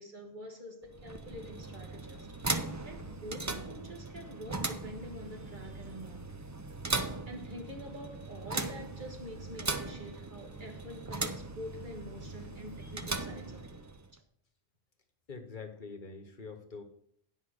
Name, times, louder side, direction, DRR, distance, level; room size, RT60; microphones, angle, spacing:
voice 1, 0.0-2.3 2.8-6.3 7.3-13.8 14.1-14.2, equal, 50° right, 1.6 m, -46 dB
sound 1, 0.8-14.1, right 3 dB, 25° right, 0.4 m, -39 dB
voice 2, 15.3-16.8, left 4 dB, 50° left, 1.2 m, -45 dB
9.7 x 5.4 x 6.4 m
omnidirectional pair, 1.1 m